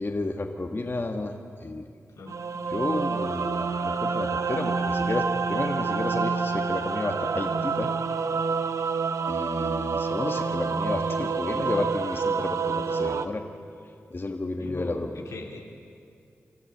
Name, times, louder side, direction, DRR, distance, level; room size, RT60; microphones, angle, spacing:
voice 1, 0.0-1.8 2.7-7.9 9.3-13.4 14.1-15.1, left 2 dB, 45° left, 4 dB, 1.5 m, -31 dB
sound 1, 2.3-13.3, right 5 dB, 75° right, 0.8 m, -28 dB
voice 2, 14.6-15.6, left 3 dB, 90° left, 0 dB, 2.5 m, -40 dB
25.5 x 13.5 x 8.0 m, 2.4 s
cardioid pair, 50°, 5 cm